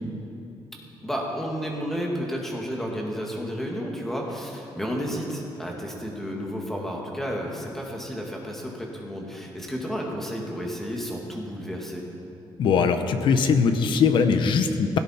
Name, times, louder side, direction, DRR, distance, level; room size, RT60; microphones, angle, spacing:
voice 1, 1.0-12.0, equal, 5° left, -1 dB, 1.9 m, -32 dB
voice 2, 12.6-15.0, left 5 dB, 60° left, 8 dB, 1.0 m, -21 dB
17.0 x 16.5 x 4.4 m, 2.8 s
cardioid pair, 175°, 9 cm